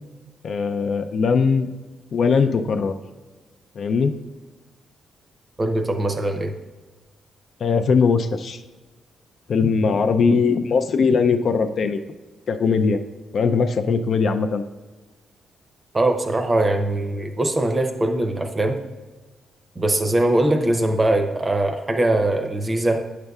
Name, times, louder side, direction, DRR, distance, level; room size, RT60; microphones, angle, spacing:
voice 1, 0.4-1.7 2.1-3.0 3.8-4.1 7.6-8.6 9.5-12.0 12.5-13.0 13.3-14.6, left 5 dB, 55° left, 8 dB, 0.4 m, -20 dB
voice 2, 5.6-6.5 15.9-18.8 19.8-23.0, right 1 dB, 20° right, 5 dB, 0.6 m, -21 dB
8.7 x 6.6 x 2.3 m, 1.2 s
cardioid pair, 125°, 0 cm